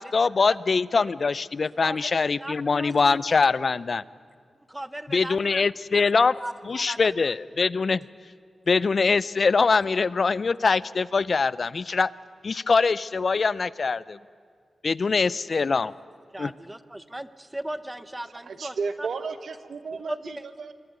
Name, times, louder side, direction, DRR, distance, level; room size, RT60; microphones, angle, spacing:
voice 1, 0.0-4.0 5.1-6.3 6.7-8.0 8.7-12.1 12.4-14.2 14.8-15.9 16.4-16.5, left 4 dB, 55° left, 20 dB, 0.4 m, -23 dB
voice 2, 1.6-2.0 2.4-3.5 4.7-5.6 6.1-7.1 15.5-15.7 16.3-19.1 19.9-20.4, right 1 dB, 15° right, 14 dB, 0.8 m, -37 dB
voice 3, 18.4-20.7, right 4 dB, 75° right, 11 dB, 1.1 m, -33 dB
23.0 x 12.5 x 9.4 m, 2.1 s
wide cardioid pair, 80°, 0 cm